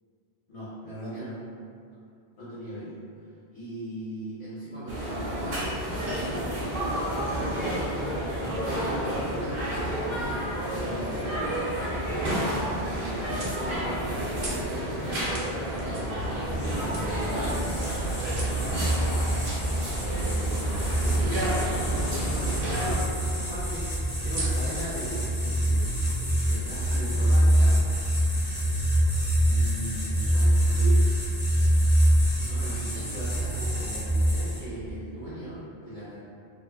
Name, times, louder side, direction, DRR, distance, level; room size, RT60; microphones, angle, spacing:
voice 1, 0.5-1.4 2.4-3.0 3.5-5.7 7.0-7.7 8.2-11.4 12.8-16.3 16.7-17.6 20.1-27.8 29.4-31.0 32.4-36.2, equal, 40° left, -14 dB, 0.8 m, -39 dB
sound 1, 4.9-22.9, right 1 dB, 65° right, 0.9 m, -30 dB
sound 2, 12.5-28.1, right 1 dB, 45° right, 0.4 m, -43 dB
sound 3, 16.4-34.8, right 1 dB, 65° left, 1.0 m, -25 dB
2.8 x 2.5 x 2.2 m, 2.4 s
omnidirectional pair, 1.0 m